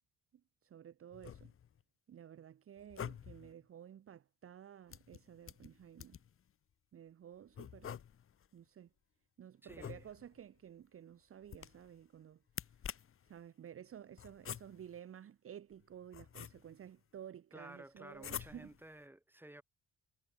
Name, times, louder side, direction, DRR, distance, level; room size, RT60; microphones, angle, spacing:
voice 1, 0.6-1.5 2.1-6.2 6.9-8.0 8.5-8.9 9.4-12.4 13.2-18.8, right 9 dB, 45° right, 0.9 m, -53 dB
sound 1, 1.1-1.8 2.8-3.5 4.9-6.4 7.5-8.5 9.7-10.4 11.4-12.0 12.5-13.3 14.2-15.0 15.7-16.9 18.2-18.9, left 8 dB, 45° left, 1.1 m, -48 dB
voice 2, 9.6-10.1 17.5-19.6, right 1 dB, 5° right, 3.1 m, -54 dB
cardioid pair, 90°, 30 cm